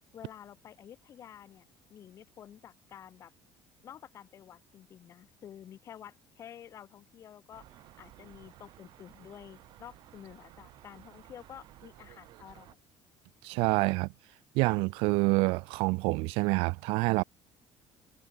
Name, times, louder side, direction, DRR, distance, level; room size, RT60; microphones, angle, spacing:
voice 1, 0.1-3.3 3.8-7.7 8.0-12.8, left 10 dB, 35° left, 0.8 m, -50 dB
sound 1, 7.5-12.7, right 15 dB, 55° right, 1.2 m, -55 dB
voice 2, 13.4-14.1 14.5-17.2, right 26 dB, 80° right, 0.4 m, -27 dB
cardioid pair, 170°, 9 cm